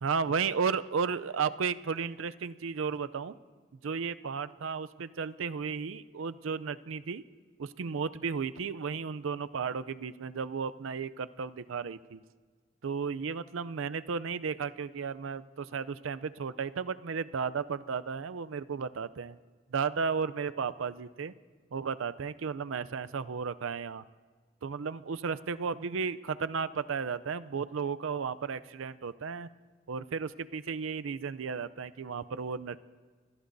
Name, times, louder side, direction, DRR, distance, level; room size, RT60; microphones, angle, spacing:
voice 1, 0.0-3.4 3.8-7.2 7.6-12.2 12.8-19.4 19.7-21.3 21.7-24.0 24.6-29.5 29.9-32.8, right 5 dB, 80° right, 14 dB, 0.5 m, -34 dB
25.5 x 19.5 x 2.7 m, 1.5 s
head